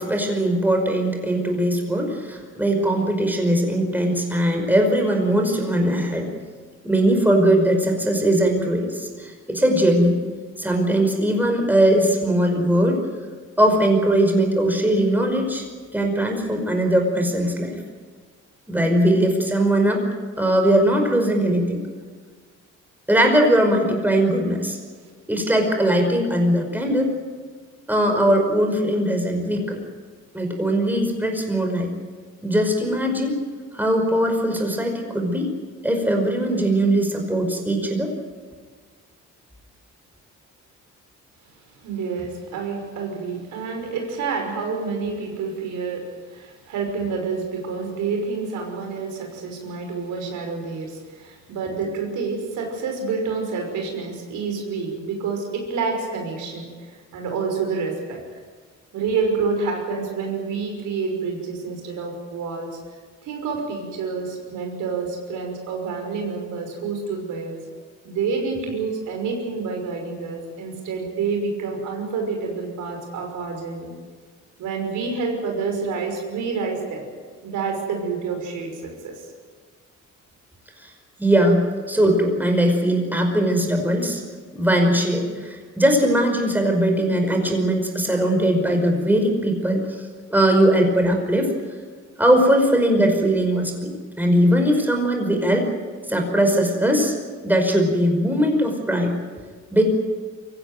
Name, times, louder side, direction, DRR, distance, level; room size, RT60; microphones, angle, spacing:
voice 1, 0.0-6.3 6.8-10.1 10.6-13.0 13.6-15.6 15.9-17.8 18.7-20.0 20.4-21.8 23.1-24.8 25.3-27.1 27.9-29.8 30.3-31.9 32.4-33.4 33.7-35.5 35.8-38.1 80.8-80.9 81.2-84.2 84.5-89.8 90.3-91.5 92.2-93.9 94.2-95.7 96.1-97.1 97.4-99.1 99.7-99.8, right 1 dB, 5° right, 3 dB, 5.4 m, -20 dB
voice 2, 41.8-46.0 46.3-58.2 58.9-62.7 63.2-67.6 68.0-73.9 74.6-77.0 77.4-79.3, right 4 dB, 85° right, 2 dB, 5.8 m, -28 dB
24.0 x 16.0 x 9.4 m, 1.5 s
cardioid pair, 90°, 30 cm